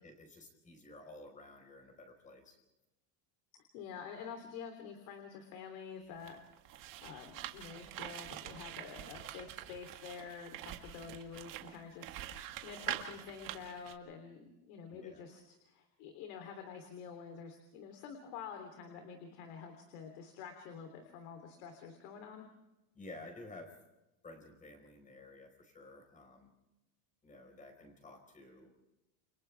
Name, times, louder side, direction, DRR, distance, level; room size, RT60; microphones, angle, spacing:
voice 1, 0.0-2.6 14.9-15.2 22.9-23.8 24.2-26.5 27.2-28.7, left 2 dB, 15° left, 5 dB, 4.9 m, -53 dB
voice 2, 3.5-6.4 7.0-22.5, left 6 dB, 70° left, 5 dB, 3.5 m, -48 dB
sound 1, 6.2-13.9, right 12 dB, 45° right, 2.0 m, -45 dB
29.5 x 29.5 x 3.5 m, 0.97 s
cardioid pair, 175°, 45 cm